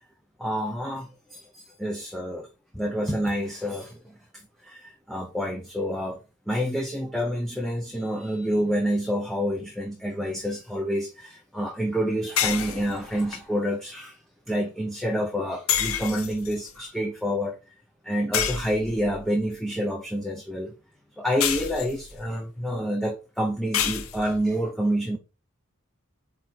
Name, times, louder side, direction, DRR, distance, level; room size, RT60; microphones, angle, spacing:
voice 1, 0.4-2.5 2.7-6.2 6.5-14.2 14.5-17.6 18.0-20.7 21.2-25.2, equal, ahead, 0.9 m, -28 dB
sound 1, 12.4-13.4 15.7-16.7 18.3-19.2 21.4-22.2 23.7-24.5, left 9 dB, 80° left, 0.8 m, -28 dB
8.3 x 3.1 x 4.1 m
head